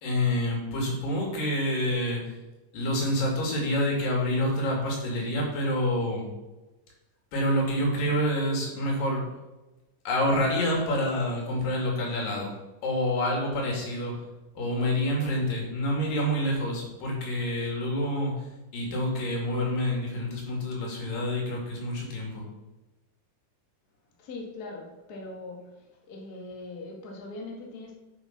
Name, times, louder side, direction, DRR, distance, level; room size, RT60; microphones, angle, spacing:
voice 1, 0.0-2.4 2.7-6.3 7.3-9.2 10.1-12.5 12.8-14.2 14.6-18.5 18.7-22.4, left 1 dB, 85° left, 0 dB, 4.2 m, -27 dB
voice 2, 24.2-25.7 26.1-28.0, left 2 dB, 35° left, 0 dB, 1.9 m, -41 dB
8.1 x 8.0 x 5.9 m, 1.1 s
omnidirectional pair, 3.8 m